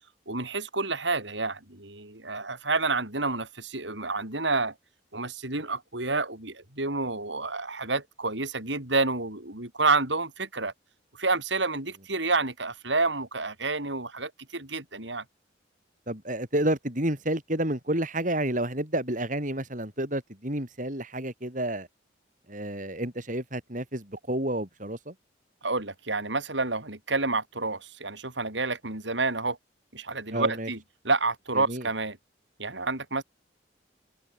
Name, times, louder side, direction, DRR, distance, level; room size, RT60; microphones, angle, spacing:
voice 1, 0.3-4.7 5.1-10.7 11.2-15.2 25.6-29.6 29.9-30.8 31.0-32.2 32.6-33.2, right 3 dB, 75° right, 6.6 m, -29 dB
voice 2, 16.1-21.9 22.5-25.1 30.3-30.7 31.5-31.9, right 1 dB, 45° right, 5.8 m, -30 dB
head